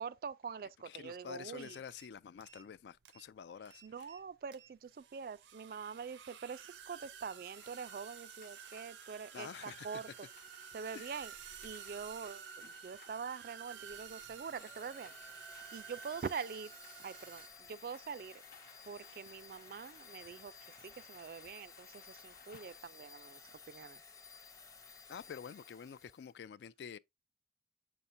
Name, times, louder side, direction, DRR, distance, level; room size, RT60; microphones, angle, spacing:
voice 1, 0.0-1.8 3.8-10.1 10.7-11.3 11.6-15.1 15.7-18.4 18.9-20.5 20.8-24.0, right 6 dB, 50° right, 0.3 m, -45 dB
voice 2, 0.8-4.1 9.3-10.0 10.9-11.1 25.1-27.0, left 7 dB, 70° left, 0.3 m, -48 dB
sound 1, 1.5-2.1 2.4-2.8 3.1-3.3 3.7-4.2 4.5-17.5, right 8 dB, 90° right, 0.6 m, -52 dB
sound 2, 7.5-22.8, left 5 dB, 55° left, 0.7 m, -63 dB
Domestic sounds home sounds, 14.2-26.3, left 5 dB, 20° left, 0.6 m, -56 dB
7.1 x 5.6 x 2.6 m
head